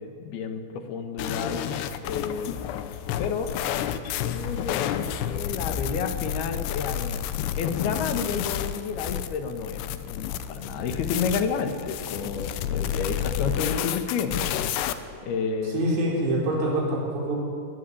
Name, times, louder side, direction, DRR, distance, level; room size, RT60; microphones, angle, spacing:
voice 1, 0.0-1.7 2.0-2.6 3.2-3.5 4.2-7.3 7.6-14.5 15.2-15.8, left 5 dB, 70° left, 7 dB, 3.3 m, -30 dB
sound 1, 1.2-14.9, left 10 dB, 85° left, 3.0 m, -30 dB
voice 2, 15.7-17.4, right 1 dB, 85° right, -2 dB, 7.1 m, -25 dB
22.0 x 16.5 x 10.0 m, 2.4 s
omnidirectional pair, 4.8 m